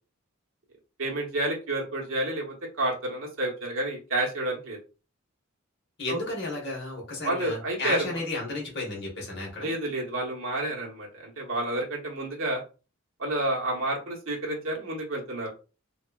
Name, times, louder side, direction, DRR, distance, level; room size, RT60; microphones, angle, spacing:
voice 1, 1.0-4.8 6.1-6.2 7.2-8.2 9.6-12.6 13.2-15.5, right 1 dB, 70° right, -3 dB, 0.9 m, -30 dB
voice 2, 6.0-9.7, left 2 dB, 50° left, -2 dB, 1.1 m, -33 dB
2.9 x 2.3 x 2.2 m, 0.33 s
head